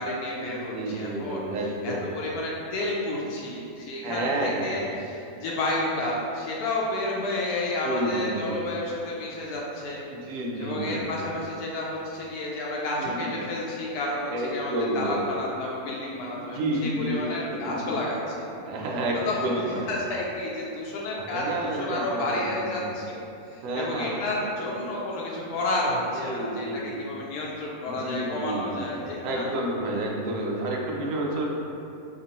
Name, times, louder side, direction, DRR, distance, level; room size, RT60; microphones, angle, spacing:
voice 1, 0.0-1.4 1.8-10.0 10.6-18.6 19.2-19.5 19.9-23.2 23.5-29.5, left 2 dB, 85° left, -4 dB, 1.1 m, -31 dB
voice 2, 0.5-2.1 4.0-4.8 7.8-8.6 10.1-11.2 13.0-13.4 14.3-15.2 16.3-17.7 18.6-19.2 19.4-19.9 21.2-22.8 23.6-24.5 26.1-27.0 27.9-31.5, right 1 dB, 70° right, -1 dB, 0.9 m, -30 dB
4.1 x 2.9 x 2.8 m, 2.8 s
omnidirectional pair, 1.6 m